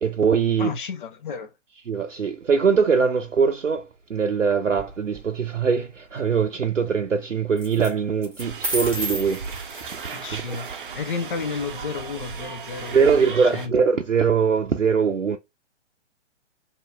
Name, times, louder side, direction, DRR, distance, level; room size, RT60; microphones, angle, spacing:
voice 1, 0.0-0.7 1.9-9.5 9.9-10.6 12.9-15.4, right 6 dB, 85° right, 0.6 m, -22 dB
voice 2, 0.6-1.5 10.1-10.7 10.9-13.2 13.5-13.7, left 5 dB, 45° left, 0.7 m, -32 dB
sound 1, 4.7-5.2 7.6-7.9 8.2-10.3, right 1 dB, 5° right, 1.1 m, -32 dB
sound 2, 8.4-13.7, right 5 dB, 45° right, 0.7 m, -36 dB
2.8 x 2.8 x 3.4 m
figure-of-eight pair, 125°, 36 cm